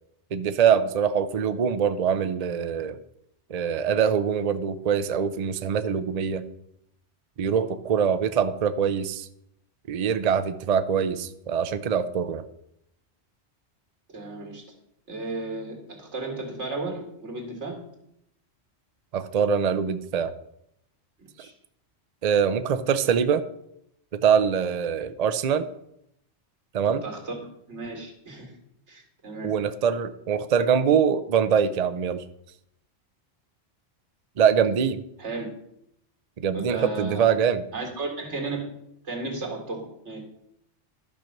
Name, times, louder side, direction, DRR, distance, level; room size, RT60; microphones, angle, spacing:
voice 1, 0.3-3.0 3.5-6.4 7.4-9.3 9.9-12.4 19.1-20.3 22.2-23.4 24.1-25.7 26.7-27.0 29.4-32.2 34.4-35.0 36.4-37.6, right 7 dB, 45° right, 11 dB, 0.5 m, -23 dB
voice 2, 14.1-14.6 15.1-17.8 21.2-21.5 27.0-27.4 27.7-28.5 28.9-29.5 35.2-35.5 36.5-37.3 37.7-38.7 39.0-40.2, right 3 dB, 90° right, 1 dB, 2.4 m, -34 dB
12.0 x 4.5 x 6.5 m, 0.77 s
omnidirectional pair, 1.2 m